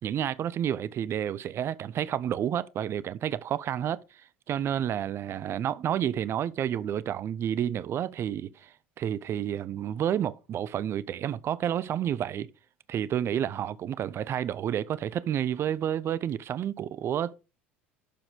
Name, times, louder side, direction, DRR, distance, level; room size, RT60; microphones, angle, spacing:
voice 1, 0.0-4.0 4.5-12.5 12.9-17.3, right 10 dB, 40° right, 0.5 m, -30 dB
11.5 x 4.9 x 3.5 m
hypercardioid pair, 70°, 7 cm